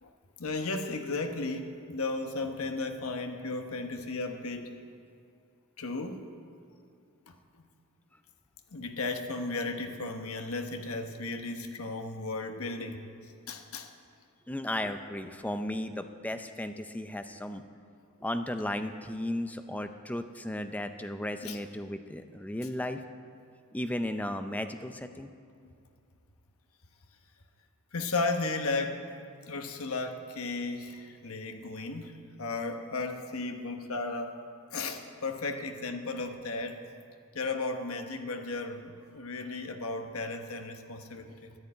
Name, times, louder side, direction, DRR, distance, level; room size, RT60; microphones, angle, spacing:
voice 1, 0.4-4.7 5.8-6.3 7.3-7.7 8.7-13.0 13.5-13.9 21.4-21.6 25.6-25.7 27.9-29.1 29.5-34.4 34.7-36.8 37.3-41.5, left 3 dB, 70° left, 5 dB, 1.1 m, -35 dB
voice 2, 14.5-17.6 18.2-23.0 23.7-25.3, left 1 dB, 5° left, 8 dB, 0.5 m, -35 dB
10.5 x 10.0 x 8.4 m, 2.4 s
head